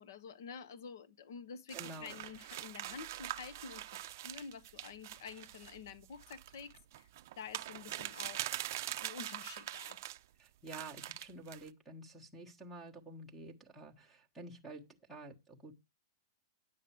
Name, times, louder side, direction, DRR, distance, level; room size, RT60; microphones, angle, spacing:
voice 1, 0.0-7.1 7.4-8.4 9.0-10.0, left 6 dB, 55° left, 1.1 m, -49 dB
voice 2, 1.7-2.2 10.4-15.7, right 2 dB, ahead, 1.3 m, -50 dB
sound 1, 1.7-10.2 10.7-11.7, right 14 dB, 45° right, 0.5 m, -44 dB
10.0 x 7.7 x 4.5 m
supercardioid pair, 175°, 2 cm